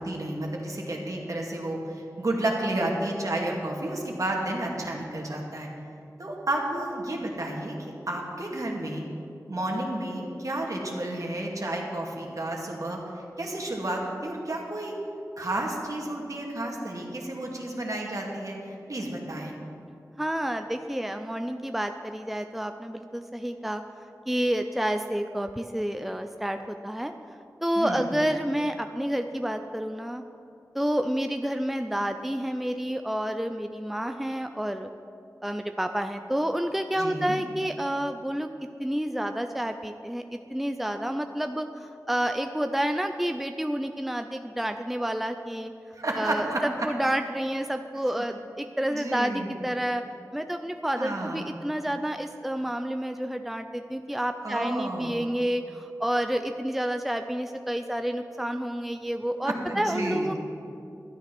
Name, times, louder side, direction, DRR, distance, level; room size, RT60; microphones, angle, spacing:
voice 1, 0.0-5.7 6.2-9.0 9.5-13.0 13.4-15.0 15.4-18.6 18.9-19.5 27.8-28.1 37.0-37.4 45.9-46.9 48.8-49.6 51.0-51.5 54.4-55.2 59.4-60.4, right 1 dB, 60° right, -1 dB, 2.2 m, -31 dB
voice 2, 20.2-23.8 24.3-27.1 27.6-30.2 30.7-34.9 35.4-38.5 38.8-40.2 40.5-45.7 46.2-50.0 50.3-60.4, equal, 5° right, 6 dB, 0.5 m, -29 dB
12.5 x 9.6 x 6.1 m, 2.6 s
wide cardioid pair, 55°, 7 cm